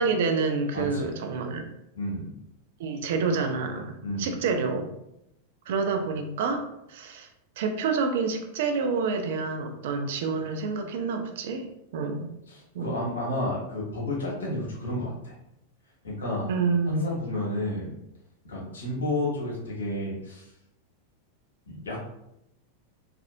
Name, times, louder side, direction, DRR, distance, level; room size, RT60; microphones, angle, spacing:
voice 1, 0.0-1.7 2.8-4.9 5.7-6.6 6.9-7.3 7.6-11.7 11.9-12.3 12.7-12.9 16.5-17.1, right 4 dB, 55° right, 5 dB, 0.4 m, -28 dB
voice 2, 0.7-1.1 1.9-2.3 4.0-4.3 12.5-15.3 16.0-16.5 16.9-18.0 18.4-20.5 21.7-22.0, left 1 dB, 65° left, -4 dB, 1.2 m, -31 dB
3.2 x 2.4 x 2.6 m, 0.83 s
figure-of-eight pair, 90°, 0 cm